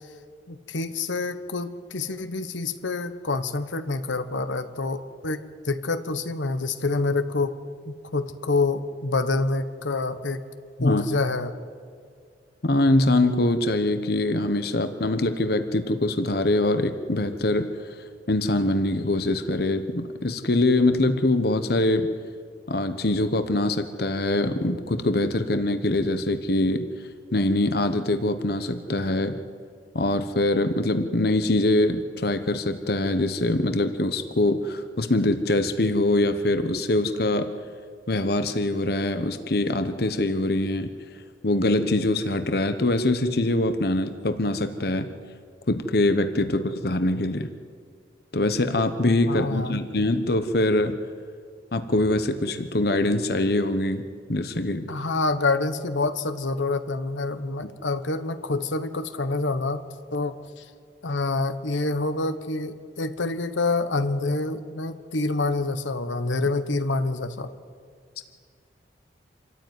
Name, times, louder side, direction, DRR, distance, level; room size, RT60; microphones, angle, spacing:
voice 1, 0.5-7.5 7.9-10.4 10.8-11.5 49.3-49.8 54.9-59.8 60.1-60.6 61.0-67.5, left 3 dB, 90° left, 10 dB, 1.2 m, -27 dB
voice 2, 12.6-17.7 18.3-22.1 22.7-26.9 27.3-29.4 29.9-37.5 38.1-40.9 41.4-45.1 45.7-47.5 48.3-51.0 51.7-54.0 54.3-54.9, left 2 dB, 55° left, 9 dB, 1.1 m, -23 dB
27.0 x 14.0 x 9.5 m, 2.1 s
head